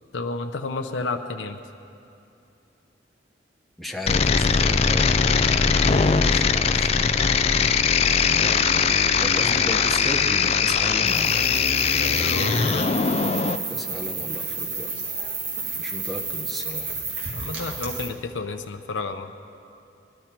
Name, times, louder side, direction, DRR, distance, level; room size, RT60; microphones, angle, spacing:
voice 1, 0.1-1.6 12.0-12.8 17.3-19.3, left 3 dB, 85° left, 5 dB, 0.6 m, -31 dB
voice 2, 3.8-7.5 8.2-11.5 13.7-14.9 15.8-16.9, left 1 dB, ahead, 0 dB, 0.8 m, -36 dB
sound 1, 4.1-13.6, left 5 dB, 35° left, 0.4 m, -20 dB
sound 2, 11.1-18.1, right 4 dB, 70° right, 2.0 m, -31 dB
21.5 x 12.0 x 4.5 m, 2.7 s
head